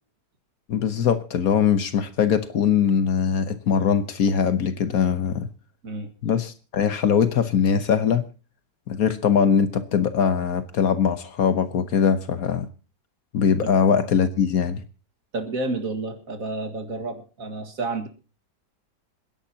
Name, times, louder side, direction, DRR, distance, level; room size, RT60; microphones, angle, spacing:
voice 1, 0.7-5.5 6.2-8.2 8.9-12.7 13.3-14.8, left 7 dB, 60° left, 11 dB, 1.3 m, -21 dB
voice 2, 15.3-18.1, right 3 dB, 50° right, 7 dB, 2.2 m, -30 dB
27.0 x 11.0 x 2.8 m, 0.34 s
omnidirectional pair, 1.8 m